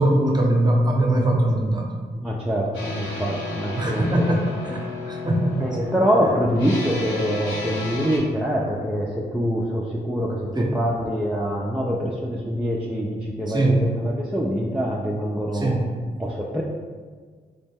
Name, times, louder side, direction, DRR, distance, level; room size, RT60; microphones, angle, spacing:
voice 1, 0.0-1.9 3.8-4.4 4.6-4.8 5.1-5.9 10.5-10.7 13.5-13.8 15.5-15.8, right 1 dB, 20° right, -1 dB, 0.9 m, -21 dB
voice 2, 2.2-4.3 5.6-15.8 16.2-16.6, equal, 5° right, -5 dB, 0.5 m, -25 dB
sound 1, 2.7-8.2, left 3 dB, 85° left, 0.6 m, -33 dB
4.1 x 2.0 x 3.4 m, 1.6 s
hypercardioid pair, 45°, 19 cm